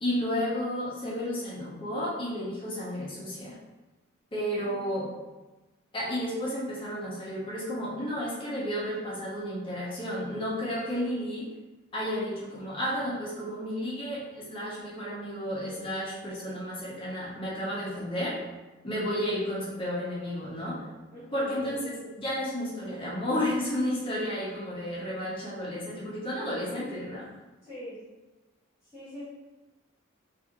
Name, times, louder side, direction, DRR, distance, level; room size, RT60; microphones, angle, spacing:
voice 1, 0.0-3.6 4.3-5.1 5.9-11.5 11.9-18.4 18.8-20.8 21.3-27.3, equal, 25° left, -7 dB, 0.8 m, -32 dB
voice 2, 4.7-5.1 21.1-21.5 27.6-28.1 28.9-29.2, equal, 10° right, -13 dB, 0.9 m, -43 dB
3.3 x 2.5 x 2.9 m, 1.1 s
head